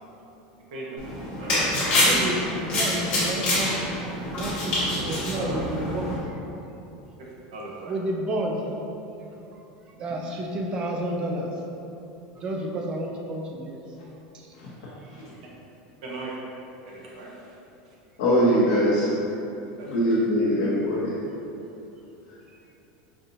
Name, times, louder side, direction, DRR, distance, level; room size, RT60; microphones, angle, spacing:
sound 1, 1.0-6.2, left 1 dB, 25° left, 1.1 m, -26 dB
voice 1, 1.4-2.2 5.0-5.1 5.3-5.6 7.2-7.9 16.0-16.4 16.9-17.6 17.9-18.0 19.8-19.9, right 2 dB, 85° right, -4 dB, 0.9 m, -38 dB
voice 2, 1.9-3.7 4.4-6.2 7.9-8.6 10.0-11.5 12.4-13.8, right 1 dB, 20° right, 1 dB, 0.3 m, -30 dB
voice 3, 18.2-19.1 19.9-21.1, equal, 60° left, -8 dB, 0.8 m, -22 dB
4.8 x 2.8 x 2.6 m, 3.0 s
supercardioid pair, 180°, 4 cm